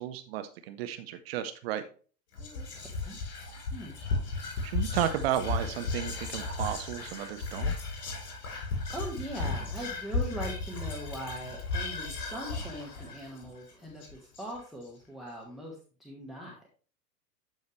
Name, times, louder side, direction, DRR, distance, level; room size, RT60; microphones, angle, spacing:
voice 1, 0.0-1.8 4.6-7.7, right 11 dB, 40° right, 9 dB, 0.7 m, -33 dB
Whispering, 2.3-14.8, left 3 dB, 60° left, 3.9 m, -35 dB
voice 2, 2.4-3.2 3.7-4.0 8.9-16.6, equal, ahead, -2 dB, 1.3 m, -41 dB
12.0 x 4.7 x 3.2 m, 0.39 s
figure-of-eight pair, 95°, 49 cm